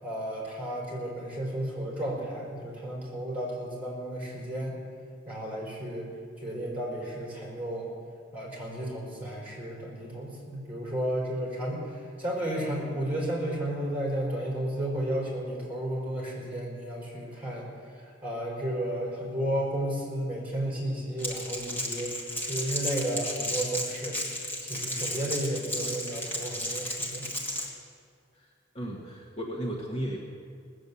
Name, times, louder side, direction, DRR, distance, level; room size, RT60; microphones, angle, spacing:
voice 1, 0.0-4.8 5.2-6.1 6.4-7.9 8.3-17.7 17.9-22.2 22.4-24.2 24.6-27.3, right 1 dB, 10° right, -4 dB, 4.9 m, -33 dB
Crackle, 21.2-27.7, left 1 dB, 10° left, 2.1 m, -33 dB
voice 2, 28.7-30.2, equal, 35° left, -2 dB, 1.5 m, -34 dB
19.0 x 7.7 x 8.5 m, 2.2 s
head